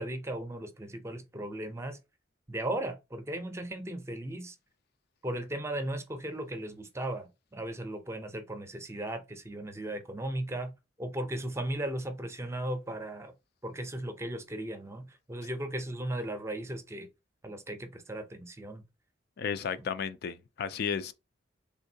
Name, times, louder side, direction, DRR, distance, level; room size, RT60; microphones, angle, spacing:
voice 1, 0.0-2.0 2.5-4.6 5.2-10.7 11.0-13.3 13.6-17.1 17.4-18.8, right 1 dB, 15° right, 0.5 m, -36 dB
voice 2, 19.4-21.1, left 6 dB, 55° left, 0.3 m, -33 dB
3.6 x 2.6 x 2.6 m
head